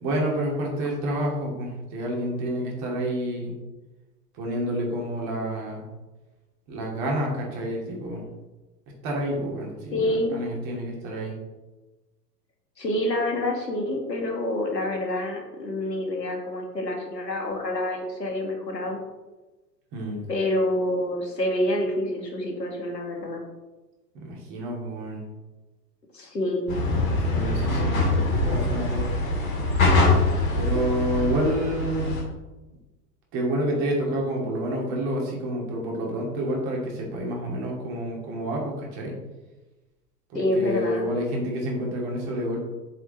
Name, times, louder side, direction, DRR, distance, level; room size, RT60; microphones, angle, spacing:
voice 1, 0.0-3.6 4.4-5.8 6.7-8.2 9.0-11.3 19.9-20.3 24.2-25.2 26.9-29.1 30.4-32.2 33.3-39.1 40.5-42.6, right 1 dB, 35° right, -1 dB, 2.4 m, -29 dB
voice 2, 9.9-10.4 12.8-19.0 20.3-23.4 26.1-26.7 40.3-41.1, left 1 dB, 80° left, 1 dB, 1.8 m, -27 dB
sound 1, 26.7-32.2, left 2 dB, 55° left, 2.3 m, -23 dB
7.9 x 4.7 x 4.1 m, 1.1 s
figure-of-eight pair, 100°, 49 cm